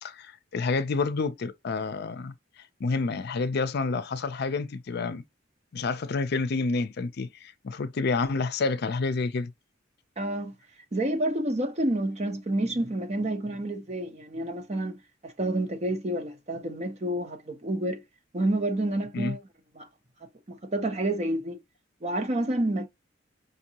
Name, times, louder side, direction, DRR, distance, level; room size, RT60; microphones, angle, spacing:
voice 1, 0.0-2.3 2.8-5.2 5.7-9.5 19.1-19.4, left 4 dB, 60° left, 0.5 m, -29 dB
voice 2, 10.2-10.5 10.9-15.0 15.2-18.0 18.3-19.4 19.8-19.9 20.2-21.6 22.0-22.9, right 1 dB, 35° right, 0.8 m, -29 dB
5.2 x 2.7 x 2.8 m
head